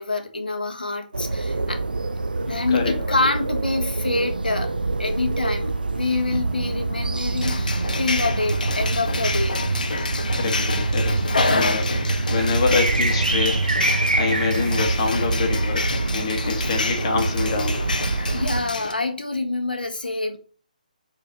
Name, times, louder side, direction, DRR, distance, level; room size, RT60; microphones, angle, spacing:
voice 1, 0.0-1.8 2.5-4.7 5.0-9.6 16.6-16.8 17.9-20.4, left 3 dB, 90° left, 1.5 m, -27 dB
sound 1, 1.1-18.6, right 3 dB, 85° right, 0.8 m, -25 dB
voice 2, 2.7-3.3 10.3-11.2 11.5-11.9 12.3-13.6 14.1-18.0, left 5 dB, 40° left, 1.6 m, -26 dB
sound 2, 7.4-18.9, left 3 dB, 65° left, 1.0 m, -28 dB
5.0 x 4.5 x 5.8 m
figure-of-eight pair, 145°, 5 cm